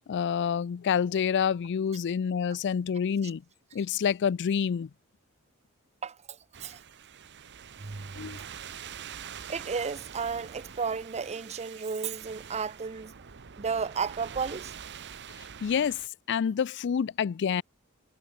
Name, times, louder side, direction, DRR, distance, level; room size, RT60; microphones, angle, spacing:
voice 1, 0.1-3.4 3.7-4.9 8.1-8.4 15.6-16.0 16.3-17.6, left 7 dB, 55° left, 0.4 m, -27 dB
voice 2, 6.0-6.8 7.8-8.5 9.5-13.1 13.6-14.7, right 5 dB, 30° right, 0.6 m, -33 dB
sound 1, 6.5-16.1, right 8 dB, 55° right, 0.9 m, -45 dB
head